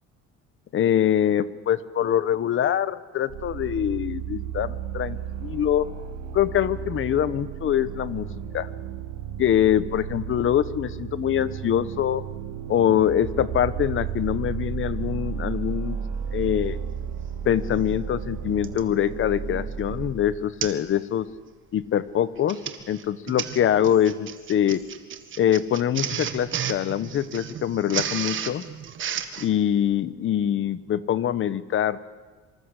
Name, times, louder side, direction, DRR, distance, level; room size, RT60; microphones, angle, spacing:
voice 1, 0.7-5.9 6.3-8.3 8.5-8.7 9.4-12.2 12.7-16.0 16.3-16.8 17.4-21.3 21.7-22.6 22.9-24.8 25.4-28.6 29.4-32.0, left 10 dB, 40° left, 15 dB, 1.2 m, -24 dB
sound 1, 3.3-20.1, right 8 dB, 75° right, 4.6 m, -33 dB
Printer, 17.4-17.5 18.6-18.9 19.5-19.7 20.0-20.1 20.6-20.9 21.2-21.5 22.3-29.5, right 9 dB, 40° right, 1.8 m, -33 dB
26.0 x 25.0 x 8.3 m, 1.4 s
cardioid pair, 160°, 30 cm